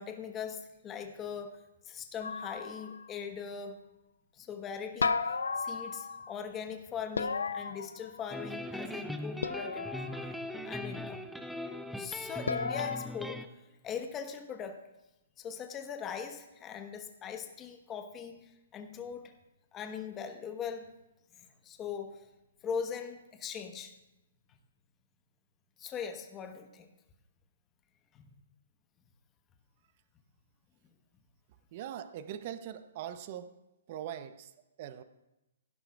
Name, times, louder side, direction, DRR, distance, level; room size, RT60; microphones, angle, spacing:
voice 1, 0.0-1.6 1.8-3.8 4.3-10.1 10.7-11.2 12.0-14.8 15.4-19.3 19.7-20.9 21.6-22.3 22.6-23.9 25.8-26.9 28.1-28.3, left 7 dB, 20° left, 6 dB, 1.0 m, -40 dB
sound 1, 2.2-3.1 5.0-6.4 7.2-8.4 9.4-10.3 12.5-13.1, left 4 dB, 90° left, 0.5 m, -34 dB
sound 2, 8.3-13.5, left 1 dB, ahead, 0.5 m, -40 dB
voice 2, 31.7-33.6 33.9-35.0, right 10 dB, 45° right, 12 dB, 0.7 m, -42 dB
16.5 x 11.0 x 2.3 m, 0.96 s
hypercardioid pair, 145°, 0 cm